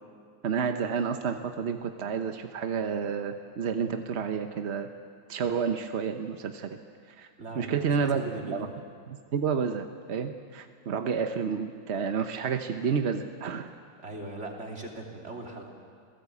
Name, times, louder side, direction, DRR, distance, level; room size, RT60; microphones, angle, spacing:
voice 1, 0.4-4.9 5.3-6.8 7.1-7.3 7.6-8.7 9.1-13.7, right 6 dB, 50° right, 7 dB, 0.8 m, -30 dB
voice 2, 7.4-8.7 14.0-15.7, right 2 dB, 35° right, 0 dB, 3.1 m, -40 dB
27.0 x 17.5 x 8.4 m, 2.1 s
omnidirectional pair, 2.2 m